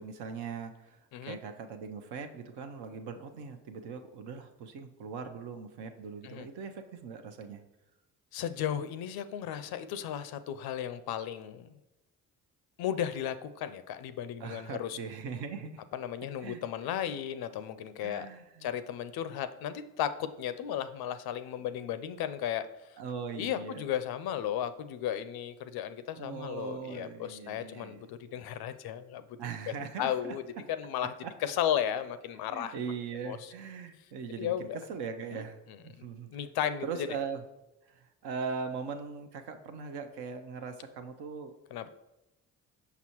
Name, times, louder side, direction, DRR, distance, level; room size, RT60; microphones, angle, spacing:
voice 1, 0.0-7.6 14.4-15.8 16.4-16.6 18.0-18.7 23.0-23.8 26.2-28.0 29.4-30.3 31.2-31.3 32.5-36.3 36.8-37.4 37.9-41.5, right 5 dB, 65° right, 6 dB, 0.8 m, -40 dB
voice 2, 8.3-11.7 12.8-15.0 15.9-18.3 18.6-22.7 23.3-29.4 29.7-30.4 30.8-31.1 31.4-32.8 33.3-33.5 34.4-34.8 35.3-35.4 36.0-36.1 36.3-37.1 41.7-41.9, left 10 dB, 60° left, 12 dB, 0.5 m, -35 dB
5.9 x 5.6 x 3.0 m, 0.96 s
hypercardioid pair, 45°, 43 cm